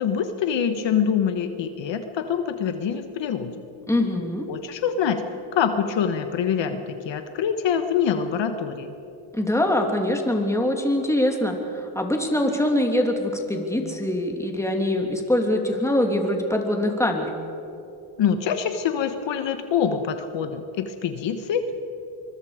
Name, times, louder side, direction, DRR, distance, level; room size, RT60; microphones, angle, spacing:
voice 1, 0.0-3.5 4.5-5.2 5.5-8.9 18.2-21.7, left 7 dB, 60° left, 8 dB, 1.4 m, -25 dB
voice 2, 3.9-4.5 9.3-17.3, left 1 dB, 5° left, 2 dB, 2.9 m, -23 dB
24.5 x 22.0 x 5.1 m, 2.8 s
cardioid pair, 100°, 49 cm